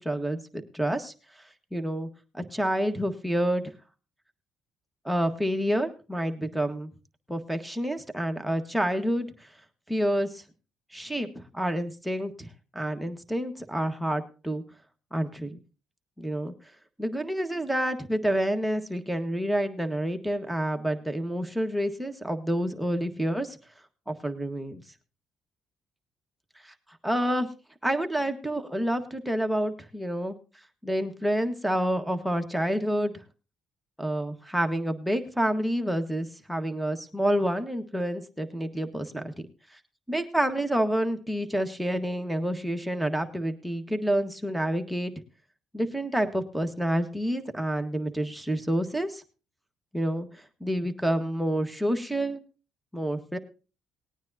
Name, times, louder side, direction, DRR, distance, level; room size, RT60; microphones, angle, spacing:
voice 1, 0.0-1.4 1.7-2.1 2.3-3.6 5.0-6.9 7.3-9.5 9.9-10.4 10.9-14.6 15.1-15.6 16.2-16.5 17.0-23.6 24.1-24.8 26.6-26.7 27.0-27.5 27.8-30.3 30.8-33.1 34.0-39.5 39.7-39.8 40.1-45.1 45.7-49.2 49.9-52.4 52.9-53.4, right 1 dB, ahead, 4 dB, 1.6 m, -28 dB
19.5 x 9.5 x 2.8 m, 0.33 s
cardioid pair, 80°, 0 cm